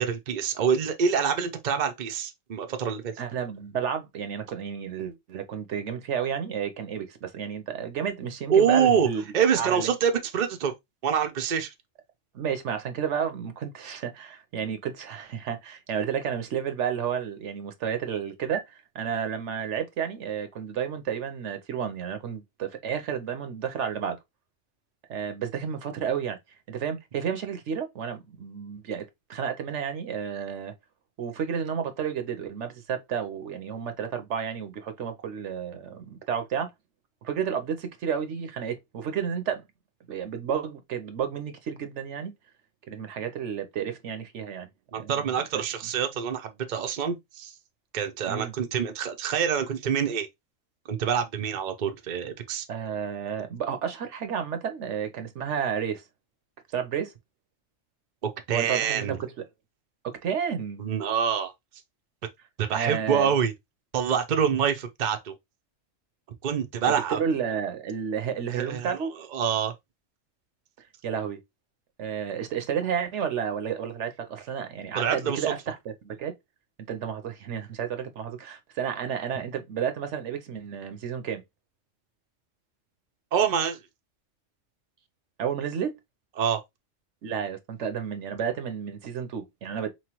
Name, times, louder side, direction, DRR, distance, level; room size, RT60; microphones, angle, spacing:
voice 1, 0.0-3.1 8.5-9.1 9.3-10.7 11.0-11.7 44.9-47.5 47.9-50.3 50.9-52.7 58.5-59.2 60.8-61.5 62.6-63.5 63.9-65.3 66.4-67.2 68.5-69.7 74.9-75.5 83.3-83.8 86.4-86.6, right 7 dB, 50° right, 0.6 m, -26 dB
voice 2, 3.2-9.2 9.6-9.9 12.3-24.2 25.1-26.4 26.7-30.7 31.2-36.7 37.2-39.6 40.1-42.3 42.9-44.7 45.0-45.1 45.5-45.6 48.3-48.5 52.7-56.0 56.7-57.1 58.5-59.3 60.0-60.9 62.7-63.4 66.8-69.1 71.0-71.4 72.0-76.3 76.9-81.4 85.4-85.9 87.2-89.9, right 7 dB, 65° right, 1.0 m, -31 dB
4.3 x 3.1 x 2.9 m
omnidirectional pair, 1.3 m